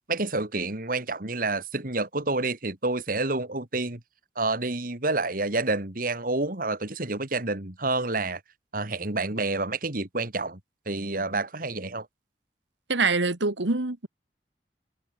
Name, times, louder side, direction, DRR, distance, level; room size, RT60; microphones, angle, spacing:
voice 1, 0.1-4.0 4.4-8.4 8.7-10.6 10.9-12.1, right 3 dB, 50° right, 2.5 m, -28 dB
voice 2, 12.9-14.1, right 3 dB, 85° right, 1.9 m, -25 dB
head